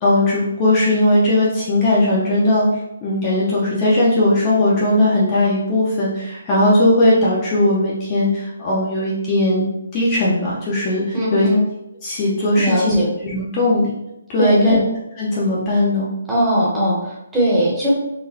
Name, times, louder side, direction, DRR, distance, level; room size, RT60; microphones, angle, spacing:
voice 1, 0.0-2.6 3.0-9.7 9.9-11.4 12.0-13.0 13.2-13.9 14.3-14.8 15.2-16.1, left 1 dB, 20° left, -7 dB, 0.6 m, -18 dB
voice 2, 11.1-11.6 12.6-13.1 14.4-14.8 16.3-17.9, equal, 5° right, -8 dB, 0.8 m, -19 dB
3.8 x 2.2 x 2.8 m, 0.86 s
hypercardioid pair, 170°, 0 cm